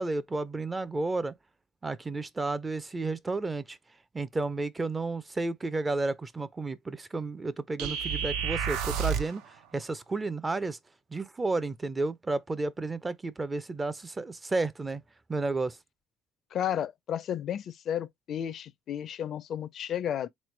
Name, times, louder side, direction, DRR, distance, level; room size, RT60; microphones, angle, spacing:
voice 1, 0.0-1.3 1.8-3.8 4.1-10.8 11.1-15.0 15.3-15.8, right 3 dB, 20° right, 0.4 m, -32 dB
sound 1, 7.8-9.4, right 7 dB, 85° right, 0.6 m, -30 dB
voice 2, 16.5-20.3, left 10 dB, 55° left, 0.4 m, -33 dB
3.7 x 3.1 x 3.1 m
cardioid pair, 105°, 0 cm